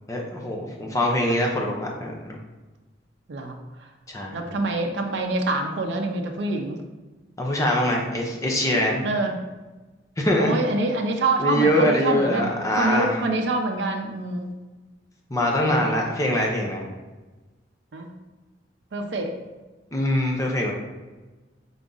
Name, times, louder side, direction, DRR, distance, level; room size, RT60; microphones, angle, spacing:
voice 1, 0.1-2.4 4.1-4.4 7.4-9.0 10.2-10.5 11.4-13.1 15.3-16.9 19.9-20.7, left 1 dB, 15° left, 0 dB, 0.7 m, -23 dB
voice 2, 1.2-1.7 3.3-3.9 4.3-6.8 9.0-9.4 10.4-14.5 15.7-16.1 17.9-18.1 18.9-19.3, right 2 dB, 65° right, 3 dB, 0.5 m, -26 dB
3.9 x 3.6 x 3.8 m, 1.2 s
head